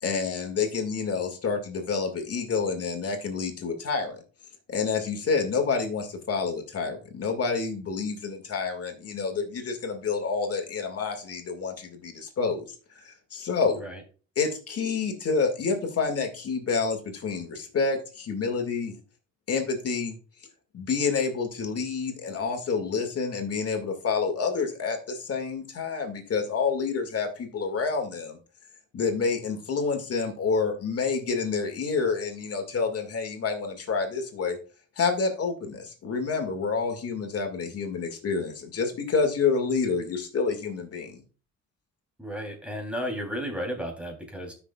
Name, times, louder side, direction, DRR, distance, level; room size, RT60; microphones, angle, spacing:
voice 1, 0.0-4.2 4.7-12.7 13.0-13.8 14.4-18.9 19.5-20.2 20.7-28.4 28.9-34.6 35.0-41.2, left 5 dB, 50° left, 4 dB, 2.2 m, -28 dB
voice 2, 42.2-44.5, equal, 5° right, 2 dB, 3.2 m, -33 dB
13.0 x 6.2 x 2.4 m, 0.38 s
cardioid pair, 90°, 30 cm